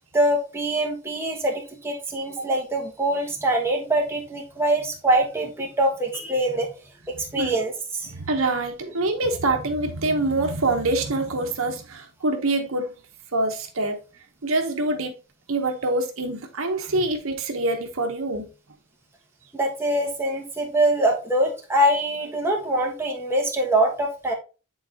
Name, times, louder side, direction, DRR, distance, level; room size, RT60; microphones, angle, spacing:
voice 1, 0.1-6.7 7.1-8.1 19.5-24.3, right 1 dB, 10° right, 1.2 m, -24 dB
voice 2, 8.1-12.9 13.3-14.0 14.4-15.1 15.5-18.5, right 2 dB, 70° right, 1.0 m, -25 dB
8.4 x 4.0 x 2.8 m
head